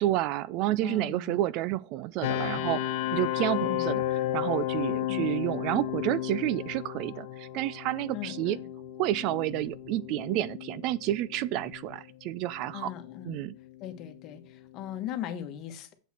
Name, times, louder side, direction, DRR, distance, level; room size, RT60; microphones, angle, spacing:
voice 1, 0.0-4.0 4.3-8.6 9.0-12.9 13.2-13.5, right 14 dB, 45° right, 0.4 m, -30 dB
voice 2, 0.8-1.4 3.6-3.9 5.1-5.3 8.1-8.7 12.7-13.4 13.8-15.9, left 10 dB, 35° left, 1.4 m, -39 dB
sound 1, 2.2-15.0, left 13 dB, 55° left, 1.1 m, -34 dB
8.3 x 7.3 x 4.4 m
supercardioid pair, 150°, 0 cm